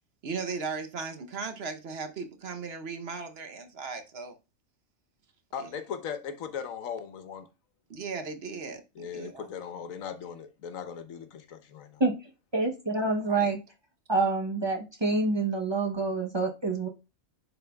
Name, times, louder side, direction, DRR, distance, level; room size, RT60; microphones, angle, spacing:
voice 1, 0.2-4.3 5.6-5.7 7.9-9.5 13.3-13.5, right 4 dB, 55° right, 0.9 m, -37 dB
voice 2, 5.5-7.5 8.9-12.0, left 7 dB, 75° left, 1.2 m, -38 dB
voice 3, 12.5-13.6 14.1-16.9, right 3 dB, 30° right, 0.5 m, -27 dB
10.5 x 4.0 x 2.2 m
omnidirectional pair, 1.4 m